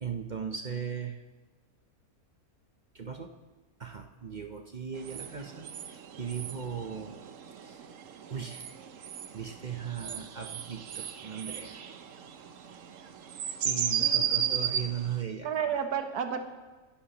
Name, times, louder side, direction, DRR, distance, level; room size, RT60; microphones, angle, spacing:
voice 1, 0.0-1.2 2.9-3.3 3.8-7.2 7.6-7.8 8.3-8.7 9.3-11.8 13.6-15.8, right 7 dB, 45° right, 5 dB, 0.6 m, -38 dB
sound 1, 5.0-15.2, right 9 dB, 65° right, 1.0 m, -35 dB
voice 2, 14.0-14.6 15.4-16.4, right 8 dB, 80° right, 6 dB, 1.5 m, -32 dB
25.0 x 11.5 x 2.9 m, 1.3 s
omnidirectional pair, 1.6 m